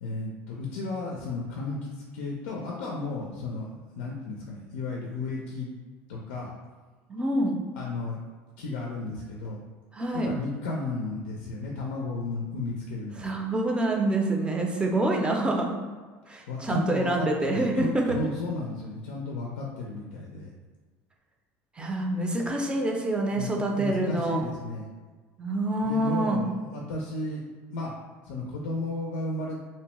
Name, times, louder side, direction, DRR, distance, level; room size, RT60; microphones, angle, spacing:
voice 1, 0.0-5.7 6.1-6.5 7.8-8.2 8.6-9.6 10.1-13.3 16.5-20.5 23.3-24.9 25.8-27.4 27.7-27.9 28.2-29.6, left 2 dB, 90° left, -1 dB, 0.4 m, -33 dB
voice 2, 7.1-7.6 9.9-10.3 13.2-15.7 16.3-18.2 21.8-24.4 25.4-26.4, right 1 dB, 15° right, 1 dB, 0.4 m, -26 dB
2.6 x 2.1 x 2.9 m, 1.4 s
supercardioid pair, 95°, 6 cm